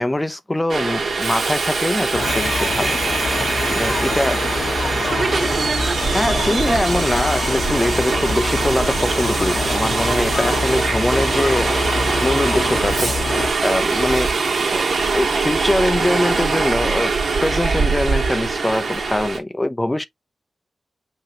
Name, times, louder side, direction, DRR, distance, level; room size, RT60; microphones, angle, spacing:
voice 1, 0.0-2.9 3.7-4.4 6.1-11.8 12.2-14.3 14.7-14.8 15.1-17.1 17.4-20.0, left 1 dB, 15° left, 0.7 m, -22 dB
Subway metro underground, 0.7-19.4, right 4 dB, 65° right, 2.3 m, -22 dB
sound 1, 2.1-13.5, left 4 dB, 70° left, 1.1 m, -26 dB
voice 2, 5.0-7.0 12.6-12.8 17.8-17.9, right 4 dB, 45° right, 0.7 m, -28 dB
5.7 x 3.1 x 2.8 m
wide cardioid pair, 90°, 0 cm